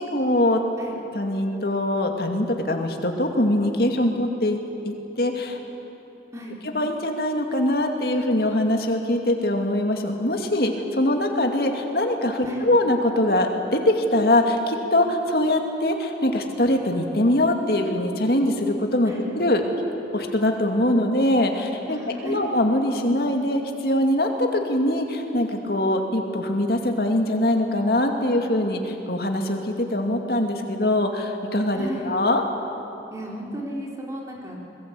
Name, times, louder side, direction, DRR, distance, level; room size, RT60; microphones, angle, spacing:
voice 1, 0.0-0.6 1.1-4.6 4.8-5.6 6.7-19.6 20.1-32.4, left 1 dB, 60° left, 3 dB, 2.5 m, -23 dB
voice 2, 21.8-22.4 31.7-32.1 33.1-34.6, right 1 dB, 20° right, -2 dB, 3.6 m, -34 dB
26.0 x 20.5 x 8.6 m, 3.0 s
head